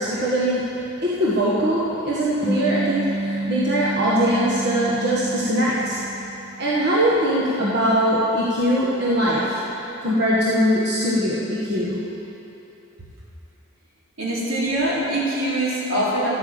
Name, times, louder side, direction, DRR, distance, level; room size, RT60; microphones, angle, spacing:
voice 1, 0.0-6.0 6.5-9.6 10.0-12.0, equal, 50° right, -7 dB, 1.6 m, -21 dB
sound 1, 2.4-7.1, right 2 dB, 25° left, 1.1 m, -29 dB
voice 2, 14.2-16.4, right 1 dB, 80° right, -7 dB, 3.8 m, -23 dB
12.5 x 9.2 x 7.9 m, 3.0 s
head